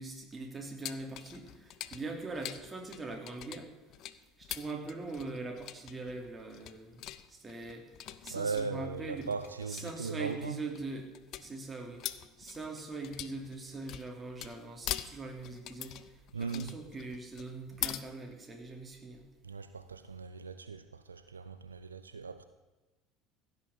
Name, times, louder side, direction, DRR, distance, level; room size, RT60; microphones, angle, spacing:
voice 1, 0.0-3.7 4.4-9.3 9.7-11.1 11.4-12.1 12.4-19.2, right 3 dB, 20° right, 2 dB, 3.0 m, -42 dB
sound 1, 0.8-18.0, left 13 dB, 55° left, 0.6 m, -44 dB
voice 2, 8.3-10.6 16.3-16.7 19.4-22.4, right 5 dB, 90° right, 11 dB, 0.5 m, -38 dB
16.0 x 6.3 x 8.2 m, 1.2 s
figure-of-eight pair, 65°, 0 cm